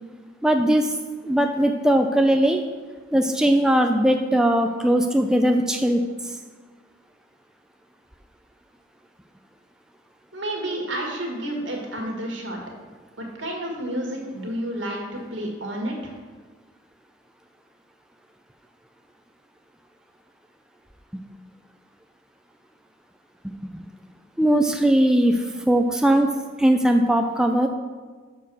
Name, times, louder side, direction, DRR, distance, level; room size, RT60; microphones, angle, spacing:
voice 1, 0.4-0.9 1.2-2.6 3.1-6.3 23.4-23.8 24.4-26.3 26.6-27.7, right 1 dB, 5° right, 4 dB, 0.3 m, -20 dB
voice 2, 10.3-12.6 13.2-16.1, right 1 dB, 75° right, 0 dB, 1.7 m, -30 dB
6.9 x 4.6 x 6.2 m, 1.4 s
head